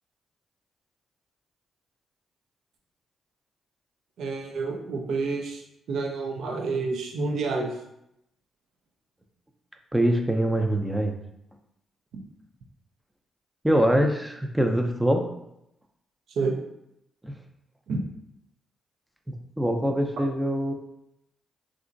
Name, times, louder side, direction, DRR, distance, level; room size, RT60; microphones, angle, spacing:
voice 1, 4.2-5.6 5.9-7.8 12.1-12.2 16.3-16.6 17.9-18.0, right 4 dB, 70° right, 2 dB, 0.4 m, -29 dB
voice 2, 9.9-11.2 13.6-15.3 17.2-17.3 19.3-20.7, right 1 dB, 10° right, 4 dB, 0.5 m, -24 dB
2.8 x 2.5 x 2.4 m, 0.81 s
hypercardioid pair, 45°, 0 cm